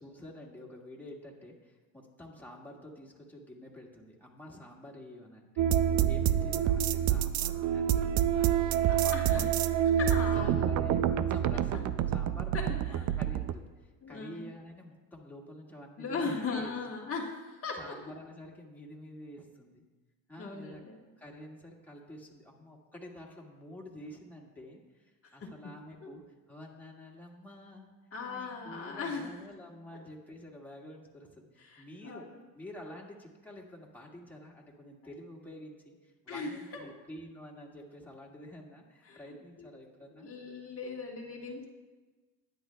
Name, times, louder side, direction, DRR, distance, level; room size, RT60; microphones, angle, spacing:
voice 1, 0.0-5.7 6.1-8.7 9.0-9.7 10.3-11.0 11.3-16.7 17.8-19.8 20.3-20.8 21.2-27.9 28.2-32.3 32.5-40.3, left 1 dB, 5° left, -3 dB, 1.9 m, -49 dB
sound 1, 5.6-13.5, right 10 dB, 45° right, 0.5 m, -27 dB
voice 2, 8.9-9.5 9.9-10.8 11.7-11.8 12.5-13.0 14.0-14.5 16.0-18.0 20.4-21.0 25.4-25.7 28.1-29.3 31.6-32.3 36.3-36.9 39.0-39.2 39.6-39.7 40.2-41.6, left 4 dB, 35° left, -2 dB, 1.4 m, -38 dB
20.5 x 9.9 x 2.3 m, 1.2 s
cardioid pair, 130°, 41 cm